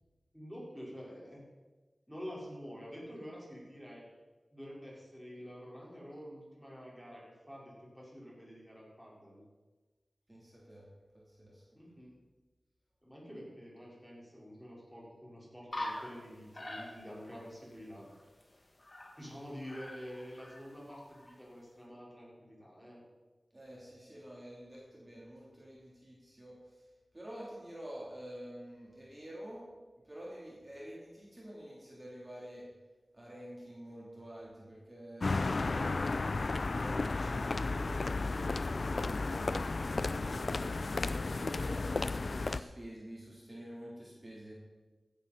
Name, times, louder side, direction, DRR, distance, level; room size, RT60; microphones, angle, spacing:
voice 1, 0.3-1.4 2.1-4.0 4.5-9.4 11.7-12.1 13.0-18.1 19.2-23.0, equal, ahead, -5 dB, 4.7 m, -48 dB
voice 2, 10.3-10.9 11.3-11.6 23.5-26.6 27.1-29.6 30.1-32.7 33.1-36.3 36.7-44.5, equal, 30° right, -5 dB, 3.6 m, -48 dB
sound 1, 15.7-16.3 16.5-17.4 17.7-17.8 18.0-19.3 19.6-21.3, left 1 dB, 40° left, 2.2 m, -44 dB
sound 2, 35.2-42.6, left 3 dB, 65° left, 0.4 m, -33 dB
16.0 x 10.5 x 4.3 m, 1.2 s
wide cardioid pair, 70°, 0 cm